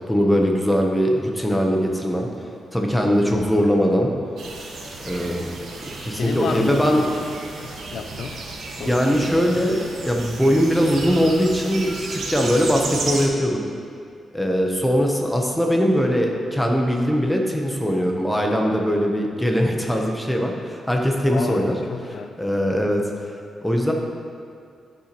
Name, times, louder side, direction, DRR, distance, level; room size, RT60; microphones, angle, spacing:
voice 1, 0.1-2.3 2.7-4.1 5.0-5.5 6.0-7.0 8.8-13.6 14.3-21.7 22.4-23.3 23.6-23.9, equal, 5° left, 1 dB, 0.9 m, -21 dB
sound 1, 4.4-13.3, right 3 dB, 65° right, 1.1 m, -33 dB
voice 2, 6.2-7.2 7.6-8.4 8.8-9.0 21.3-22.4, left 6 dB, 70° left, 8 dB, 0.5 m, -31 dB
12.0 x 5.9 x 3.0 m, 2.3 s
wide cardioid pair, 140°, 0 cm